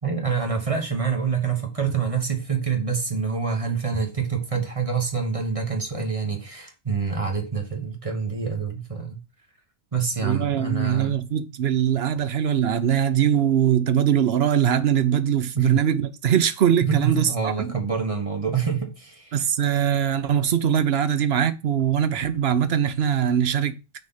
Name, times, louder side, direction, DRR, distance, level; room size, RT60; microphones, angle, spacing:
voice 1, 0.0-9.2 9.9-11.2 15.5-15.9 16.8-19.3, right 6 dB, 30° right, 1.4 m, -26 dB
voice 2, 10.2-17.7 19.3-23.8, right 9 dB, 60° right, 0.9 m, -22 dB
6.2 x 4.3 x 5.7 m
omnidirectional pair, 1.2 m